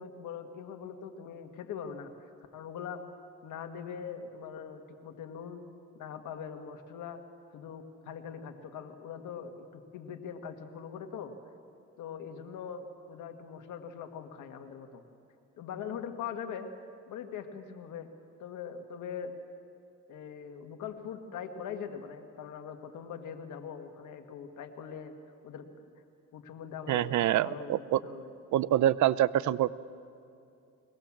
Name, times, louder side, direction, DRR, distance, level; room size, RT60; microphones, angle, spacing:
voice 1, 0.0-3.0 3.4-5.6 5.9-7.2 7.5-11.3 12.0-15.0 15.6-16.7 17.1-18.1 18.4-19.4 20.1-25.1 25.4-25.9 26.3-27.1 27.4-28.3, left 7 dB, 80° left, 6 dB, 1.8 m, -42 dB
voice 2, 26.9-28.0 28.5-29.7, right 12 dB, 70° right, 19 dB, 0.6 m, -26 dB
22.5 x 18.5 x 7.3 m, 2.6 s
cardioid pair, 90°, 30 cm